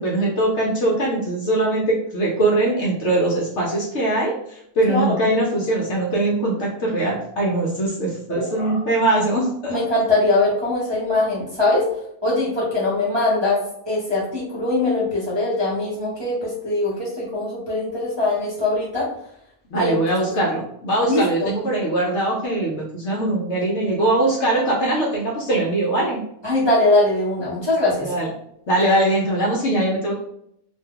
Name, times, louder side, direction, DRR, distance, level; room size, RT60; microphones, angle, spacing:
voice 1, 0.0-9.8 19.7-26.2 28.0-28.3 28.7-30.1, right 1 dB, 60° left, -3 dB, 0.9 m, -21 dB
voice 2, 4.9-5.2 8.3-8.8 9.7-11.8 12.2-13.6 13.9-19.1 19.7-20.0 21.0-21.5 26.4-28.1, left 2 dB, 25° right, -9 dB, 0.7 m, -21 dB
2.7 x 2.2 x 3.6 m, 0.73 s
omnidirectional pair, 1.6 m